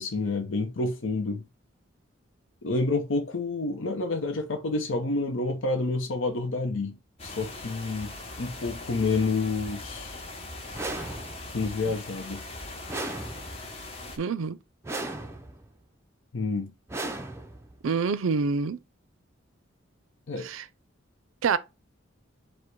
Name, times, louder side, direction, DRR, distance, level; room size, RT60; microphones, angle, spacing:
voice 1, 0.0-1.4 2.6-8.1 8.4-10.2 11.5-12.4 16.3-16.7 20.3-20.5, left 3 dB, 75° left, 0.7 m, -29 dB
sound 1, 7.2-14.2, left 2 dB, 30° left, 0.8 m, -40 dB
sound 2, 10.7-11.6 12.9-13.8 14.8-15.7 16.9-17.8, right 2 dB, 15° right, 0.4 m, -36 dB
voice 2, 14.2-14.6 17.8-18.8 20.4-20.7 21.4-21.6, right 5 dB, 90° right, 0.5 m, -26 dB
4.8 x 2.1 x 4.6 m
head